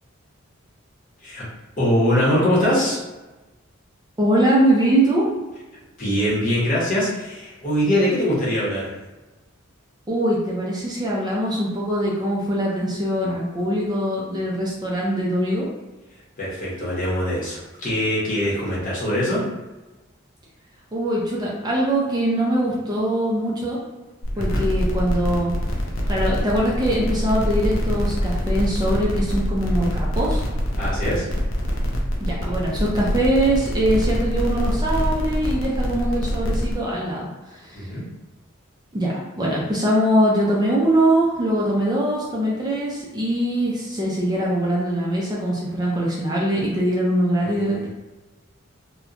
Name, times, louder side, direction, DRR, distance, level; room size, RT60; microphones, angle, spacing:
voice 1, 1.8-3.0 6.0-8.9 16.4-19.4 24.3-24.6 30.8-31.3 37.7-38.0 47.4-47.9, equal, 40° left, -7 dB, 0.9 m, -22 dB
voice 2, 4.2-5.3 10.1-15.7 20.9-23.8 24.4-25.5 26.1-30.4 32.2-37.9 38.9-47.9, right 1 dB, 20° right, -4 dB, 0.4 m, -22 dB
sound 1, 24.2-36.7, equal, 70° left, 0.5 m, -24 dB
2.8 x 2.1 x 2.4 m, 1.1 s
head